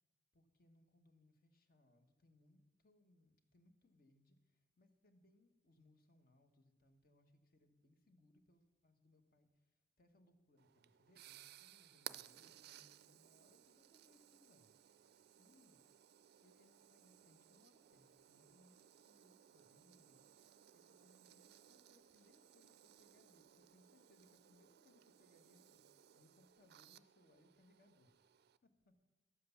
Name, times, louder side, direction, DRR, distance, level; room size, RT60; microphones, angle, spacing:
voice 1, 0.3-15.8 16.4-28.3 28.6-29.0, left 1 dB, 55° left, 7 dB, 1.2 m, -72 dB
sound 1, 10.6-28.6, right 11 dB, 60° right, 0.4 m, -60 dB
12.5 x 7.6 x 7.0 m, 1.1 s
head